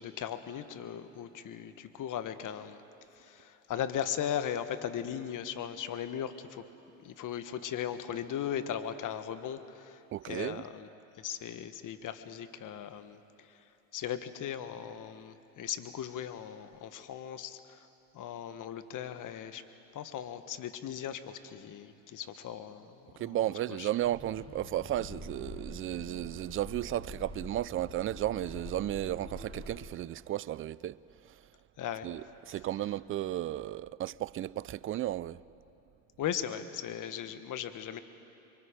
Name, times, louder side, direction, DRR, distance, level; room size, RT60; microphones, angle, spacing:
voice 1, 0.0-2.8 3.2-6.6 7.0-10.9 11.2-13.2 13.9-17.9 18.1-19.6 19.9-23.9 31.8-32.1 36.2-38.0, left 9 dB, 50° left, 1.3 m, -38 dB
voice 2, 10.1-10.6 23.2-31.0 32.0-35.4, right 13 dB, 35° right, 0.4 m, -34 dB
sound 1, 24.0-29.8, left 1 dB, 15° left, 5.3 m, -46 dB
24.5 x 24.0 x 5.1 m
hypercardioid pair, 75°, 40 cm